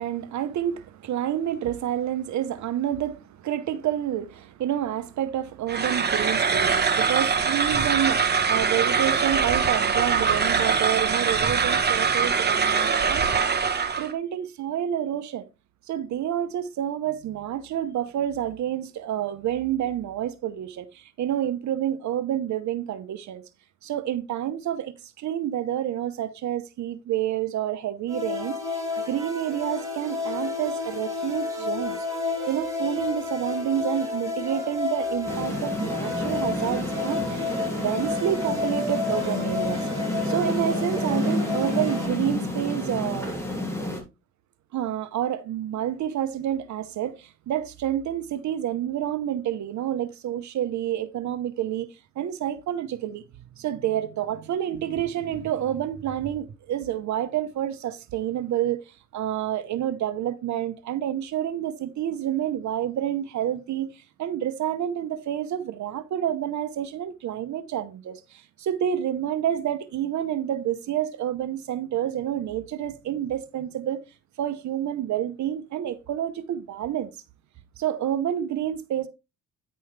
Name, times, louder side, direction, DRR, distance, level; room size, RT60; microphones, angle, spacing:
voice 1, 0.0-13.3 14.0-15.5 15.9-23.4 23.8-28.8 29.1-32.0 32.5-37.5 37.8-39.9 40.2-43.3 44.7-51.9 52.2-53.2 53.6-74.0 74.4-77.1 77.8-79.1, right 11 dB, 70° right, 0.9 m, -28 dB
sound 1, 5.7-14.1, right 6 dB, 35° right, 1.3 m, -23 dB
sound 2, 28.1-42.1, left 3 dB, 10° right, 4.7 m, -31 dB
sound 3, 35.3-44.0, left 1 dB, 10° left, 3.2 m, -30 dB
9.7 x 5.4 x 3.3 m
cardioid pair, 90°, 30 cm